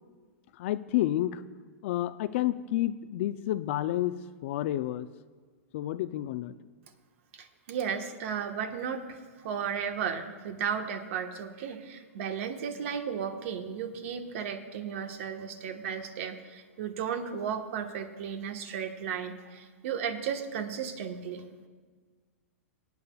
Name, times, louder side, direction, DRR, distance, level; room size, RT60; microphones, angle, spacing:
voice 1, 0.6-1.4 1.8-5.1 5.7-6.5, left 14 dB, 55° left, 14 dB, 0.5 m, -30 dB
voice 2, 7.3-21.4, right 7 dB, 60° right, 6 dB, 1.3 m, -34 dB
24.5 x 9.3 x 2.4 m, 1.5 s
hypercardioid pair, 110°, 8 cm